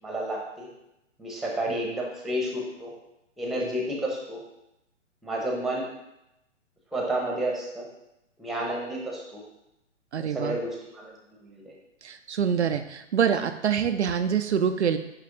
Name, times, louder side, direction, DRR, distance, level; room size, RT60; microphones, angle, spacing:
voice 1, 0.0-0.7 1.2-2.9 3.4-4.4 5.2-5.9 6.9-7.9 8.4-9.4 10.2-11.7, right 1 dB, ahead, -2 dB, 1.0 m, -31 dB
voice 2, 10.1-10.6 12.0-15.0, right 7 dB, 65° right, 7 dB, 0.6 m, -25 dB
9.5 x 3.2 x 4.9 m, 0.87 s
figure-of-eight pair, 120°, 37 cm